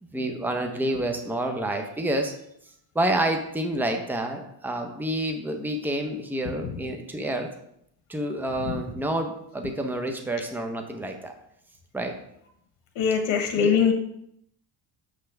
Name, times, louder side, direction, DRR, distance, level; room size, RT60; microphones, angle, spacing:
voice 1, 0.0-2.3 2.9-7.5 8.1-11.4 11.9-12.2 13.5-13.8, right 1 dB, 5° right, 4 dB, 0.8 m, -28 dB
voice 2, 13.0-13.9, left 7 dB, 75° left, 5 dB, 1.4 m, -21 dB
6.6 x 5.8 x 3.4 m, 0.73 s
cardioid pair, 115°, 48 cm